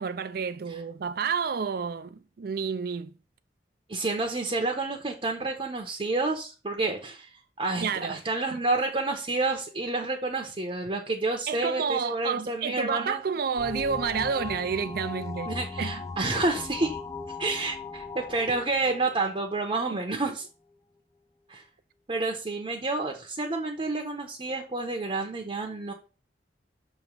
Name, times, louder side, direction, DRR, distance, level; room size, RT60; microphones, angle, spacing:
voice 1, 0.0-3.1 7.8-8.2 8.5-8.6 11.5-15.5 15.8-16.0 19.9-20.2, right 6 dB, 60° right, 0.4 m, -30 dB
voice 2, 3.9-13.2 15.5-17.0 17.4-20.5 21.5-21.6 22.1-25.9, right 3 dB, 30° right, 0.8 m, -29 dB
sound 1, 13.6-20.0, left 3 dB, 15° left, 0.4 m, -38 dB
6.3 x 3.1 x 5.0 m
head